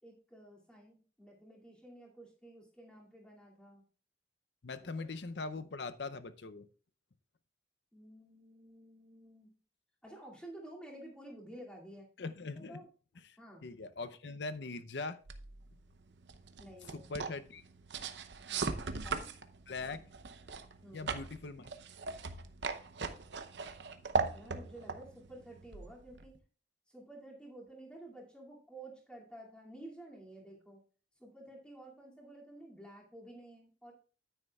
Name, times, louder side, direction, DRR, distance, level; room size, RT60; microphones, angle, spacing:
voice 1, 0.0-3.8 4.8-4.9 7.9-9.5 10.0-12.1 12.6-12.9 13.4-13.6 16.6-17.3 18.5-19.3 20.8-21.1 24.3-26.4 26.9-30.8 31.2-33.9, right 1 dB, 5° left, 2.5 m, -52 dB
voice 2, 4.6-6.7 12.2-12.8 13.6-15.2 16.9-17.6 19.7-20.0 20.9-21.7, left 3 dB, 70° left, 0.6 m, -41 dB
sound 1, 15.3-26.4, right 4 dB, 75° right, 0.8 m, -40 dB
9.7 x 9.3 x 2.4 m
head